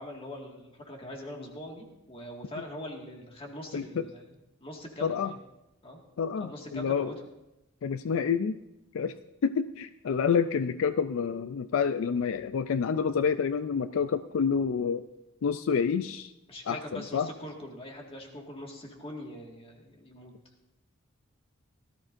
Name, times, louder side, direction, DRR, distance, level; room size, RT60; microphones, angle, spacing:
voice 1, 0.0-4.3 4.6-5.4 5.8-6.0 6.4-7.1 16.5-20.3, left 1 dB, 30° left, 1 dB, 1.9 m, -42 dB
voice 2, 3.7-4.0 5.0-5.3 6.2-7.1 7.8-8.6 8.9-9.1 9.4-15.1 15.4-16.3 16.7-17.3, left 6 dB, 75° left, 12 dB, 0.4 m, -28 dB
17.5 x 13.5 x 2.6 m, 0.96 s
head